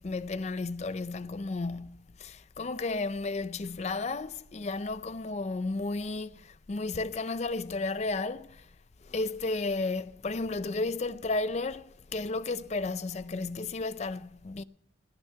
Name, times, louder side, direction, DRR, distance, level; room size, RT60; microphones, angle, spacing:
voice 1, 0.0-8.7 9.0-14.6, left 3 dB, 35° left, 0.4 m, -33 dB
17.0 x 9.9 x 5.7 m
head